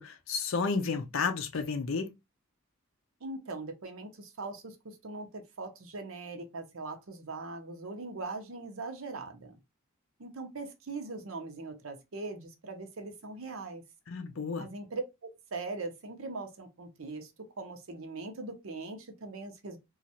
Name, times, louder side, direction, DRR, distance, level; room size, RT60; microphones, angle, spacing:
voice 1, 0.0-2.1 14.1-14.7, left 4 dB, 70° left, 0.5 m, -32 dB
voice 2, 3.2-9.6 10.2-13.8 14.6-17.3 17.6-19.8, right 3 dB, 75° right, 0.7 m, -41 dB
3.1 x 2.4 x 2.7 m
head